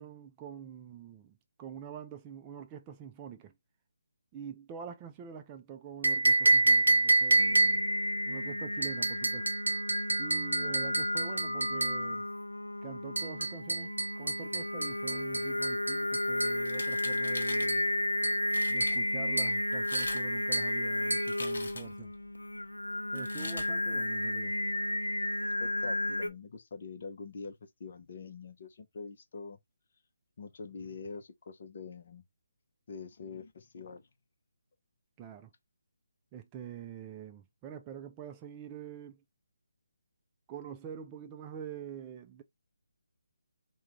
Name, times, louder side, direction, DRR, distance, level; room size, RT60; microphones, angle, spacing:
voice 1, 0.0-3.5 4.3-7.8 8.3-9.5 10.2-12.3 12.8-17.8 18.7-22.1 23.1-24.6 35.2-35.5 36.3-39.2 40.5-42.4, right 8 dB, 20° right, 0.4 m, -45 dB
sound 1, 6.0-8.0 8.8-12.1 13.2-16.6 17.7-17.9 18.2-18.5 18.8-19.1 19.4-19.6 19.9-20.2 20.5-20.8 21.1-21.4, right 2 dB, 80° right, 0.8 m, -28 dB
Singing, 7.4-26.3, left 1 dB, 90° left, 0.4 m, -33 dB
sound 2, 16.6-17.7 18.2-18.3 18.5-19.0 19.7-20.2 20.5-22.0 23.1-23.7, left 3 dB, 65° left, 1.2 m, -42 dB
voice 2, 25.4-27.5 27.8-29.6 30.4-32.2 32.9-34.0, left 4 dB, 50° left, 0.7 m, -45 dB
3.6 x 2.2 x 3.0 m
figure-of-eight pair, 150°, 0 cm